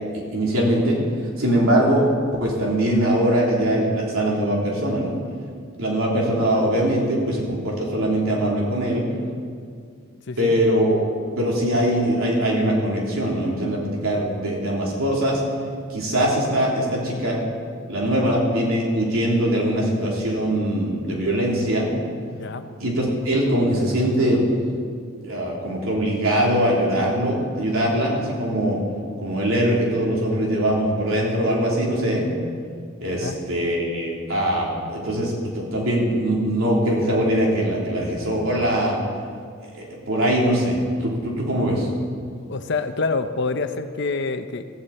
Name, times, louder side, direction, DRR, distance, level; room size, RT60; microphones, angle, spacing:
voice 1, 0.1-1.0 1.4-2.1 2.4-5.2 5.8-9.1 10.4-15.4 15.9-17.4 17.9-21.9 22.8-24.4 25.2-28.8 29.2-32.3 33.0-39.0 39.7-41.9, right 1 dB, 85° right, -3 dB, 3.7 m, -22 dB
voice 2, 22.3-22.7 33.1-33.4 42.5-44.6, left 3 dB, 55° left, 9 dB, 0.8 m, -27 dB
16.0 x 15.0 x 4.4 m, 2.1 s
head